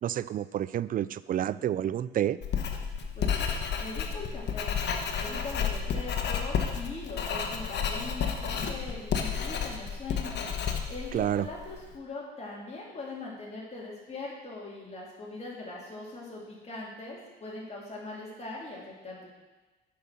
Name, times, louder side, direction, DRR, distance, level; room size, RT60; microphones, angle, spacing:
voice 1, 0.0-2.4 11.1-11.5, right 11 dB, 45° right, 17 dB, 0.4 m, -29 dB
Writing, 2.4-11.8, left 7 dB, 60° left, 1.1 m, -31 dB
voice 2, 3.1-3.5 3.8-4.8 5.2-10.3 10.9-19.3, left 2 dB, 35° left, -4 dB, 3.4 m, -41 dB
8.6 x 5.5 x 6.2 m, 1.2 s
supercardioid pair, 75°, 20 cm